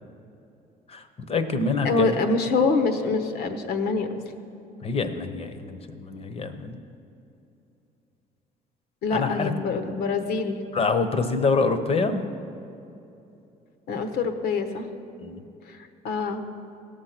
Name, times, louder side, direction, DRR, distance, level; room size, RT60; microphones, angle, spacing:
voice 1, 0.9-2.2 4.8-6.8 9.1-9.5 10.7-12.3 15.2-15.4, left 4 dB, 35° left, 9 dB, 0.9 m, -26 dB
voice 2, 1.8-4.1 9.0-10.6 13.9-14.9 15.7-16.4, left 4 dB, 65° left, 8 dB, 1.1 m, -25 dB
17.0 x 6.7 x 5.9 m, 2.8 s
cardioid pair, 110°, 17 cm